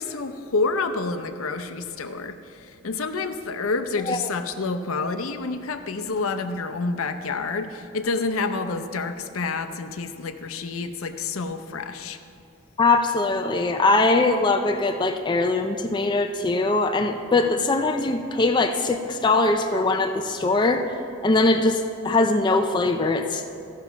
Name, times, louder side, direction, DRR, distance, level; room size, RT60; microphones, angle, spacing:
voice 1, 0.0-12.2, left 3 dB, 75° left, 8 dB, 0.6 m, -28 dB
voice 2, 12.8-20.9 21.2-23.4, left 3 dB, 20° left, 6 dB, 0.3 m, -21 dB
14.0 x 5.6 x 5.9 m, 2.6 s
head